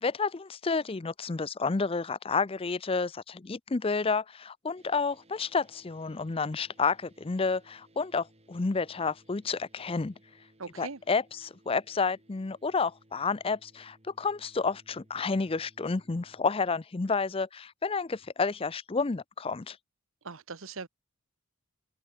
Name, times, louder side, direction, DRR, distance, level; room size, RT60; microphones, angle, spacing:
voice 1, 0.0-10.1 10.8-19.8, left 4 dB, 25° left, 0.5 m, -30 dB
sound 1, 4.8-16.4, right 1 dB, 30° right, 5.8 m, -62 dB
voice 2, 10.6-11.0 20.2-20.9, right 4 dB, 65° right, 1.1 m, -40 dB
open air
head